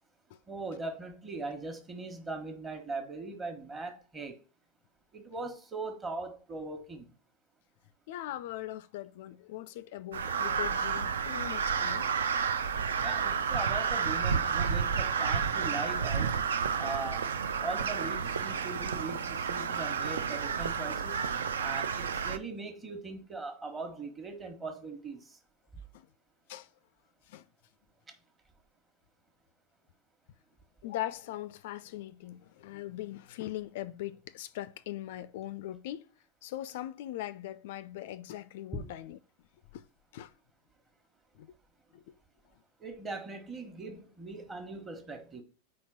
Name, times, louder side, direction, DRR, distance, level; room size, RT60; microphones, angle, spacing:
voice 1, 0.5-4.4 5.1-7.1 13.0-16.3 16.8-17.3 17.6-21.2 21.6-25.4 38.7-38.9 42.8-45.4, right 3 dB, 20° right, 1.2 m, -40 dB
voice 2, 8.1-12.1 25.9-26.1 26.5-26.7 27.3-27.4 30.8-36.1 36.4-39.2 39.7-39.8 40.1-40.3 41.4-41.5 41.9-42.0, left 14 dB, 50° left, 0.3 m, -40 dB
Crow, 10.1-22.4, right 6 dB, 65° right, 0.4 m, -31 dB
4.7 x 4.3 x 5.8 m
figure-of-eight pair, 90°, 0 cm